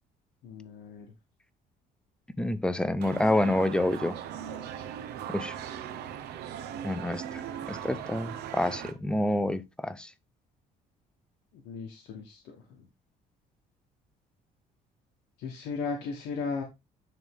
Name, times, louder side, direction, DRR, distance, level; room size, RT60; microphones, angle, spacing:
voice 1, 0.4-1.1 11.5-12.9 15.4-16.6, left 4 dB, 85° left, 1.2 m, -36 dB
voice 2, 2.4-4.2 5.3-5.5 6.8-7.4 7.7-10.1, left 1 dB, 5° left, 0.6 m, -28 dB
sound 1, 3.0-8.9, right 9 dB, 80° right, 0.8 m, -39 dB
9.1 x 3.4 x 3.5 m
cardioid pair, 110°, 17 cm